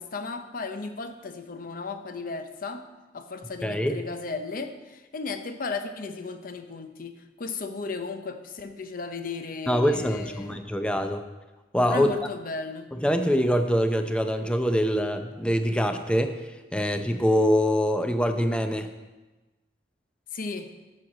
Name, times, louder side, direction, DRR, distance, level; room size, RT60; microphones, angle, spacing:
voice 1, 0.0-2.9 3.1-10.6 11.9-12.9 20.3-20.7, left 4 dB, 50° left, 8 dB, 0.7 m, -35 dB
voice 2, 3.6-4.0 9.7-11.2 11.7-12.1 12.9-16.4 16.7-18.9, equal, 5° left, 7 dB, 0.6 m, -24 dB
7.6 x 6.2 x 7.2 m, 1.2 s
head